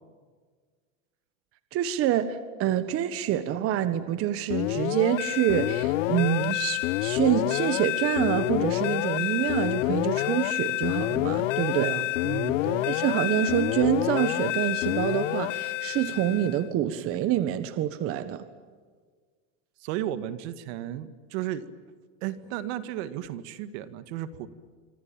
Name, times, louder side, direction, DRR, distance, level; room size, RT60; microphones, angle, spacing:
voice 1, 1.7-11.9 12.9-18.5, right 11 dB, 35° right, 12 dB, 1.5 m, -26 dB
sound 1, 4.5-16.6, left 18 dB, 85° left, 0.9 m, -28 dB
voice 2, 11.7-12.9 19.8-21.6 22.2-24.5, right 12 dB, 65° right, 12 dB, 2.0 m, -34 dB
26.0 x 25.5 x 8.9 m, 1.6 s
supercardioid pair, 150°, 37 cm